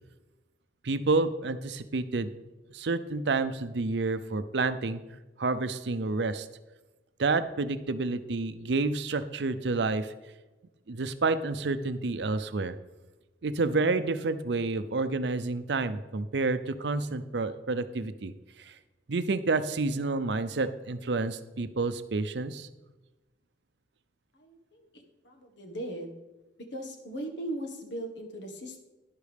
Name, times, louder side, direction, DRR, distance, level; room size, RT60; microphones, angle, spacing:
voice 1, 0.8-2.3 2.7-5.0 5.4-6.5 7.2-10.1 10.9-12.7 13.4-18.3 18.7-18.8 19.1-22.7, right 3 dB, 70° right, 12 dB, 0.6 m, -29 dB
voice 2, 24.3-26.2 26.7-28.8, right 1 dB, 85° left, 3 dB, 1.6 m, -39 dB
11.5 x 11.0 x 3.5 m, 1.1 s
head